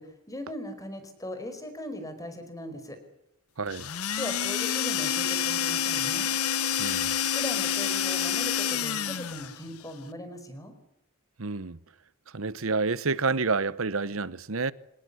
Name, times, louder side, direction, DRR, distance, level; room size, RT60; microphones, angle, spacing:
voice 1, 0.0-3.0 4.2-6.3 7.3-10.7, left 1 dB, 15° left, 5.0 m, -39 dB
voice 2, 3.6-3.9 6.8-7.2 11.4-11.8 12.3-14.7, right 4 dB, 65° right, 1.0 m, -29 dB
sound 1, 3.7-9.6, left 8 dB, 85° left, 1.2 m, -28 dB
26.5 x 19.0 x 8.4 m
head